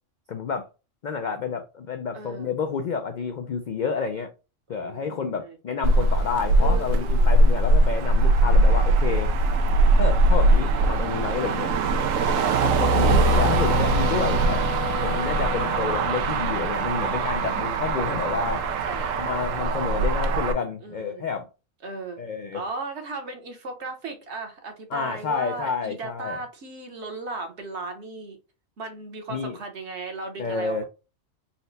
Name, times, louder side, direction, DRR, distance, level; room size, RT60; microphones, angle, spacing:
voice 1, 0.3-0.7 1.0-4.3 4.7-9.3 9.9-11.7 12.6-14.6 15.0-18.7 19.1-21.5 22.2-22.6 24.9-26.4 29.3-29.6 30.4-30.8, left 6 dB, 65° left, 0.4 m, -29 dB
voice 2, 2.1-2.5 4.7-5.6 6.6-7.3 17.4-17.8 18.5-19.1 19.4-19.8 20.8-21.3 21.8-28.4 28.8-30.8, right 3 dB, 60° right, 1.2 m, -37 dB
Motor vehicle (road), 5.8-20.5, right 2 dB, 90° right, 1.0 m, -21 dB
Wind instrument woodwind instrument, 12.8-16.3, left 6 dB, 45° left, 0.8 m, -32 dB
4.1 x 2.1 x 3.9 m
omnidirectional pair, 1.3 m